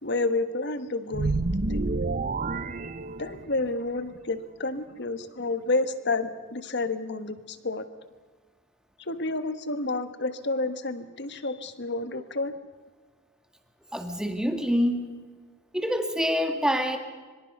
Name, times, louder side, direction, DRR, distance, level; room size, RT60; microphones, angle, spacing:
voice 1, 0.0-1.8 3.2-7.9 9.0-12.5, left 2 dB, 50° left, 11 dB, 1.4 m, -30 dB
sound 1, 1.1-3.7, right 3 dB, 40° right, 0.6 m, -29 dB
voice 2, 13.9-15.2 15.7-17.0, equal, 5° right, 5 dB, 1.9 m, -26 dB
25.0 x 24.5 x 5.5 m, 1.4 s
head